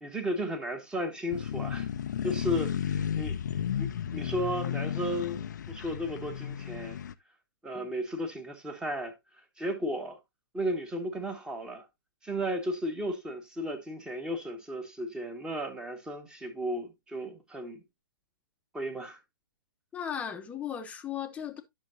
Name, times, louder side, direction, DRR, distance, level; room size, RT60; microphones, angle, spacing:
voice 1, 0.0-1.9 2.2-3.4 3.8-7.0 7.6-9.1 9.6-10.2 10.5-11.8 12.2-17.8 18.7-19.2, equal, 5° right, 1.3 m, -34 dB
sound 1, 1.3-7.1, left 9 dB, 50° left, 0.5 m, -33 dB
voice 2, 19.9-21.6, left 8 dB, 10° left, 0.9 m, -36 dB
10.5 x 6.3 x 2.7 m
figure-of-eight pair, 120°, 12 cm